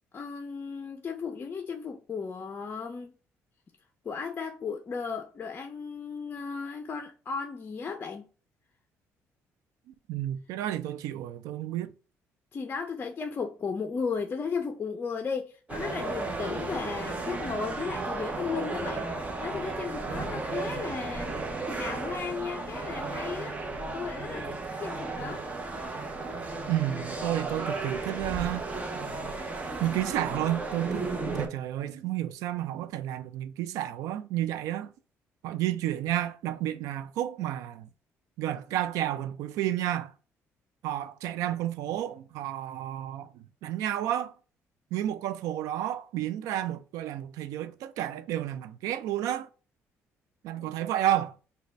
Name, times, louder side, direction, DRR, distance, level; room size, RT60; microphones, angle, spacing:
voice 1, 0.1-3.1 4.0-8.2 12.5-19.1 19.4-21.4 21.8-24.5 24.8-25.4 50.5-50.8, left 5 dB, 35° left, 0.5 m, -35 dB
voice 2, 9.9-11.9 26.7-28.7 29.8-31.1 31.4-34.9 35.4-37.9 38.4-40.1 40.8-44.3 44.9-49.5 50.4-51.3, right 12 dB, 85° right, 0.4 m, -31 dB
sound 1, 15.7-31.5, right 3 dB, 25° right, 0.8 m, -34 dB
3.9 x 2.2 x 4.5 m
cardioid pair, 90°, 6 cm